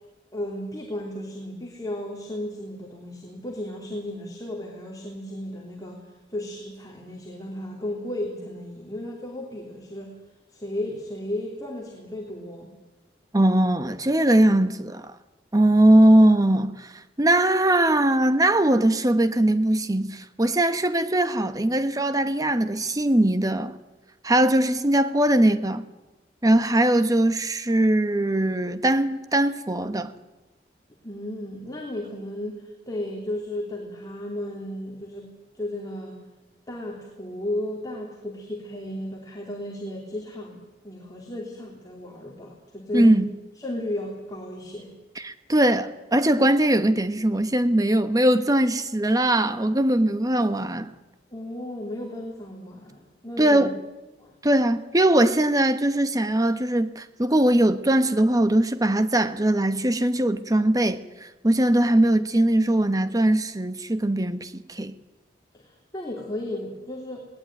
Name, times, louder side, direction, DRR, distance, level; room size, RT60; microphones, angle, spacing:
voice 1, 0.3-6.0 6.3-10.1 10.5-12.7 31.0-36.2 36.7-43.2 43.6-44.9 51.3-53.7 54.2-54.3 65.5-67.2, left 1 dB, 20° left, 3.2 m, -34 dB
voice 2, 13.3-15.1 15.5-16.9 17.2-23.7 24.2-25.8 26.4-30.1 42.9-43.3 45.2-50.9 53.4-53.7 54.4-64.9, right 1 dB, 20° right, 1.1 m, -21 dB
20.5 x 18.5 x 9.3 m
head